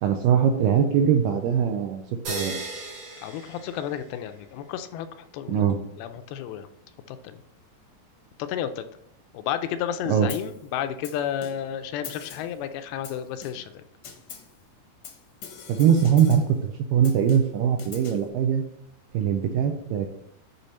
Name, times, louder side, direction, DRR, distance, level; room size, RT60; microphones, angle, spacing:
voice 1, 0.0-2.0 2.3-2.6 5.5-5.8 10.1-10.3 15.7-18.6 19.1-20.1, right 8 dB, 85° right, 5 dB, 2.0 m, -21 dB
sound 1, 2.2-4.4, right 2 dB, 50° right, 2.3 m, -36 dB
voice 2, 3.2-5.7 6.0-6.7 7.1-7.4 8.4-8.9 9.3-13.8, left 10 dB, 85° left, 9 dB, 2.5 m, -32 dB
Snare drum, 10.3-10.6 11.0-11.8 12.0-12.6 13.0-13.8 14.0-14.6 15.0-16.6 17.0-18.3, left 7 dB, 70° left, 1.7 m, -43 dB
8.2 x 3.5 x 4.1 m, 0.78 s
omnidirectional pair, 4.4 m